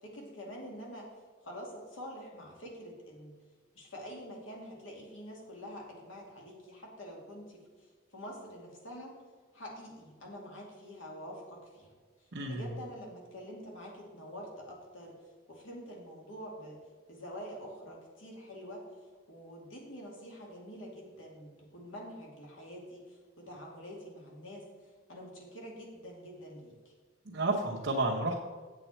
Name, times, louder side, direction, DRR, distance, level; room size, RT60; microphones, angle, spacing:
voice 1, 0.0-1.1 1.4-3.4 3.7-9.2 9.5-11.9 12.5-15.2 15.5-16.8 17.1-18.8 19.3-24.6 25.1-26.9, equal, 90° left, -2 dB, 2.3 m, -46 dB
voice 2, 12.3-12.7 27.2-28.3, right 2 dB, 70° right, -5 dB, 1.0 m, -31 dB
8.1 x 7.8 x 4.4 m, 1.4 s
head